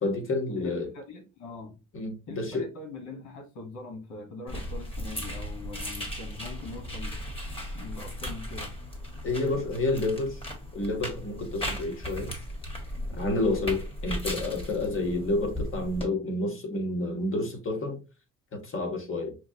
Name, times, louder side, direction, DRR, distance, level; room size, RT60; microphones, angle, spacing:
voice 1, 0.0-0.9 1.9-2.7 9.2-10.4 10.7-12.3 13.1-18.0 18.5-19.3, left 2 dB, 45° left, 1.9 m, -29 dB
voice 2, 0.6-1.8 2.3-7.2 7.7-8.7, left 2 dB, 85° left, 1.3 m, -42 dB
sound 1, 4.5-16.0, equal, 20° left, 1.8 m, -37 dB
5.8 x 2.4 x 2.8 m
cardioid pair, 90°, 30 cm